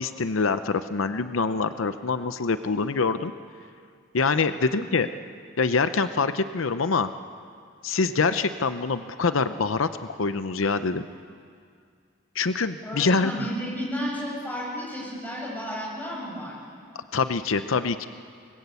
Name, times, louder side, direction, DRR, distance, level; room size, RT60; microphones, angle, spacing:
voice 1, 0.0-3.3 4.1-5.1 5.6-7.1 7.8-9.9 10.2-11.0 12.4-13.3 17.1-18.1, left 4 dB, 80° left, 11 dB, 0.7 m, -25 dB
voice 2, 12.8-16.6, equal, 10° left, -4 dB, 7.5 m, -32 dB
24.5 x 20.5 x 8.3 m, 2.2 s
head